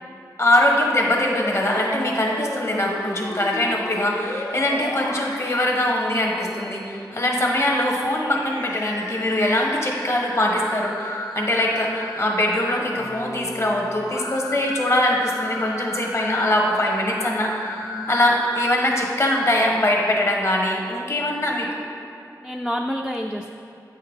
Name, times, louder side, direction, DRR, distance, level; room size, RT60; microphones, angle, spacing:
voice 1, 0.4-17.8 18.1-21.7, left 1 dB, 40° left, 0 dB, 1.2 m, -22 dB
sound 1, 0.9-6.9 8.0-18.7, left 2 dB, 80° left, 0.8 m, -34 dB
voice 2, 17.8-18.2 22.4-23.5, equal, 5° left, 2 dB, 0.4 m, -29 dB
8.5 x 5.6 x 3.7 m, 2.6 s
wide cardioid pair, 60°, 7 cm